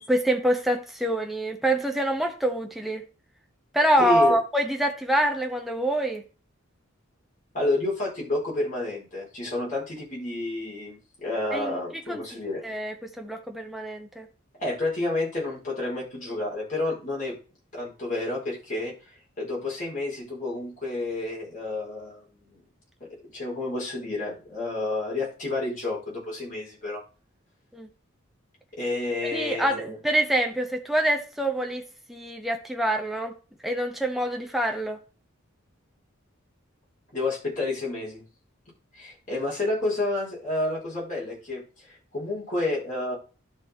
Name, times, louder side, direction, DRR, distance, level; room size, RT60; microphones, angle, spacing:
voice 1, 0.0-3.0 3.7-6.2 11.5-14.3 27.7-27.9 29.3-31.8 32.1-33.4 33.6-35.0, right 1 dB, ahead, 0.8 m, -26 dB
voice 2, 4.0-4.4 7.5-12.6 14.5-17.3 17.7-18.9 19.4-22.6 23.0-27.0 28.7-30.0 37.1-38.2 38.9-43.2, left 2 dB, 40° left, 4.2 m, -30 dB
12.0 x 4.1 x 4.3 m
head